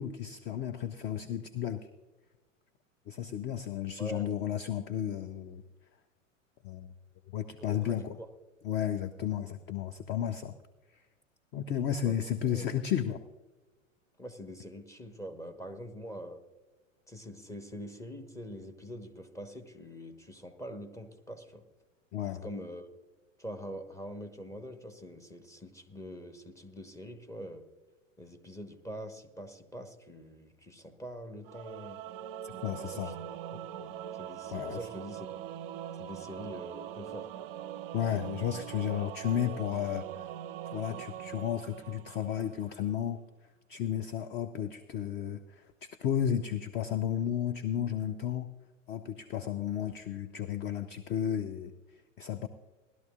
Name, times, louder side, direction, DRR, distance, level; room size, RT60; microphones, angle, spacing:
voice 1, 0.0-1.9 3.1-5.6 6.6-6.9 7.3-8.2 8.6-10.5 11.5-13.2 22.1-22.5 32.4-33.1 34.5-34.8 37.9-40.3 40.7-43.2 43.7-48.5 48.9-51.7 52.2-52.5, left 9 dB, 25° left, 10 dB, 0.6 m, -33 dB
voice 2, 4.0-4.3 7.6-8.3 12.0-12.2 12.4-12.7 14.2-16.4 17.1-21.6 22.4-22.9 23.4-27.6 28.2-32.0 32.5-35.3 36.0-37.3, equal, 10° left, 6 dB, 1.2 m, -44 dB
Singing / Musical instrument, 31.4-42.7, right 11 dB, 45° right, 0.5 m, -42 dB
19.5 x 12.5 x 2.4 m, 1.2 s
figure-of-eight pair, 90°, 39 cm